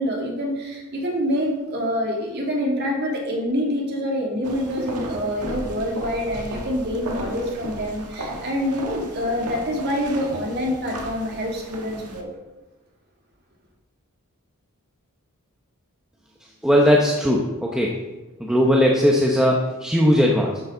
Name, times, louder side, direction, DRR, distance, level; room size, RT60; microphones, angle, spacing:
voice 1, 0.0-12.3, equal, 45° right, -1 dB, 2.9 m, -26 dB
sound 1, 4.4-12.2, right 1 dB, 90° right, 1.7 m, -35 dB
voice 2, 16.6-17.9 18.4-20.6, equal, 5° right, -2 dB, 1.0 m, -18 dB
13.0 x 10.5 x 4.0 m, 1.2 s
head